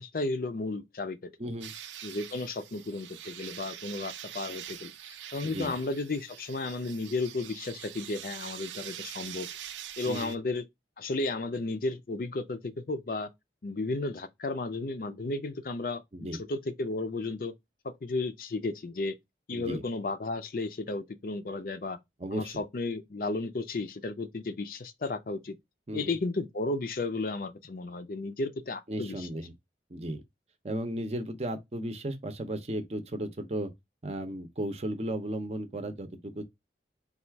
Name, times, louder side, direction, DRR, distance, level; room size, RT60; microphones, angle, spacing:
voice 1, 0.0-1.3 2.0-9.5 10.0-10.6 11.0-13.3 13.6-17.5 17.8-19.2 19.5-22.0 22.3-25.5 25.9-29.3, left 3 dB, 50° left, 0.5 m, -33 dB
voice 2, 1.4-1.7 5.4-5.7 10.0-10.3 16.1-16.4 19.5-19.8 22.2-22.6 25.9-26.2 28.9-29.5 29.9-30.2 30.6-33.7 34.0-36.4, right 1 dB, 35° right, 0.6 m, -35 dB
sound 1, 1.6-10.4, right 10 dB, 90° right, 0.5 m, -44 dB
4.0 x 2.4 x 4.5 m
head